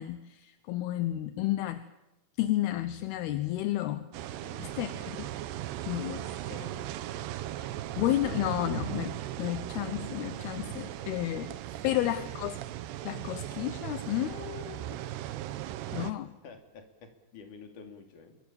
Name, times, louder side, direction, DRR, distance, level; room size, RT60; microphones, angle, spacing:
voice 1, 0.0-1.8 2.4-4.1 4.6-5.3 5.9-6.3 7.6-11.6 11.8-12.6 13.0-15.0 15.9-16.3, left 14 dB, 80° left, 11 dB, 3.0 m, -32 dB
sound 1, 4.1-16.1, right 13 dB, 90° right, 3.1 m, -38 dB
voice 2, 4.4-5.1 5.8-7.3 10.8-12.1 15.8-16.2 16.4-18.4, left 5 dB, 55° left, 5 dB, 4.3 m, -51 dB
27.0 x 23.5 x 7.1 m, 0.94 s
omnidirectional pair, 4.6 m